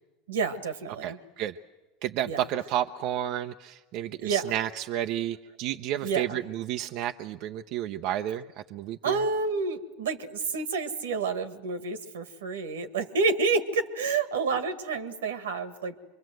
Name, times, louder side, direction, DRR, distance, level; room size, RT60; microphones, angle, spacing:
voice 1, 0.3-1.2 2.2-2.5 4.2-4.6 6.0-6.4 9.0-16.1, right 4 dB, 90° right, 9 dB, 1.8 m, -29 dB
voice 2, 1.0-1.6 2.0-8.4 8.7-9.2, right 11 dB, 60° right, 6 dB, 0.7 m, -31 dB
25.5 x 23.0 x 7.8 m, 1.2 s
hypercardioid pair, 95°, 0 cm